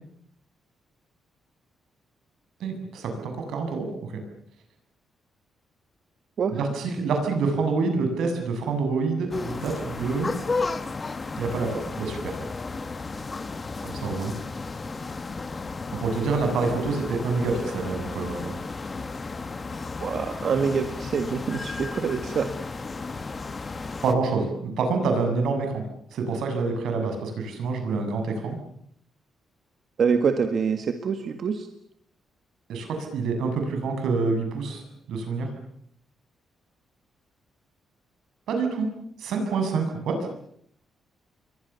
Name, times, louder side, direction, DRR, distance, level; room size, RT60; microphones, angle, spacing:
voice 1, 2.6-4.1 6.5-10.3 11.4-12.4 13.8-14.3 16.0-18.6 24.0-25.8 26.1-28.6 32.7-34.8 35.1-35.5 38.5-38.9 39.2-40.3, right 4 dB, 80° right, 5 dB, 7.4 m, -27 dB
sound 1, 9.3-24.1, left 3 dB, 25° left, 1.7 m, -33 dB
voice 2, 20.0-22.5 30.0-31.7, right 6 dB, 50° right, 7 dB, 1.8 m, -25 dB
29.5 x 23.5 x 7.1 m, 0.69 s
cardioid pair, 140°, 0 cm